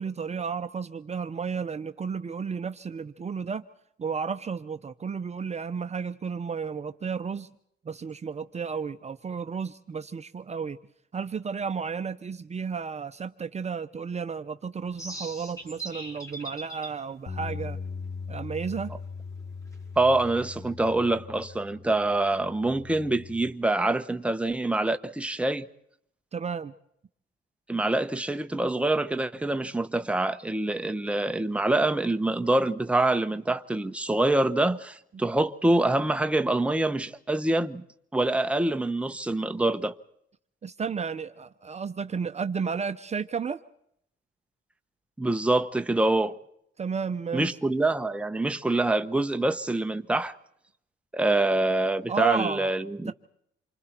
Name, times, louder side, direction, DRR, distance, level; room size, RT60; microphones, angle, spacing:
voice 1, 0.0-3.6 4.0-7.5 7.8-10.8 11.1-17.8 18.3-18.9 26.3-26.7 35.1-35.2 40.6-43.6 46.8-47.6 52.1-52.7 53.1-53.2, right 6 dB, 35° right, 0.8 m, -32 dB
sound 1, 14.9-20.7, right 1 dB, 15° left, 5.6 m, -43 dB
Bass guitar, 17.3-23.5, left 5 dB, 35° left, 1.5 m, -40 dB
voice 2, 20.0-25.7 27.7-37.8 38.1-39.9 45.2-46.3 47.3-50.4 51.1-53.1, right 2 dB, 5° right, 1.0 m, -25 dB
28.0 x 25.0 x 4.5 m
cardioid pair, 90°, 20 cm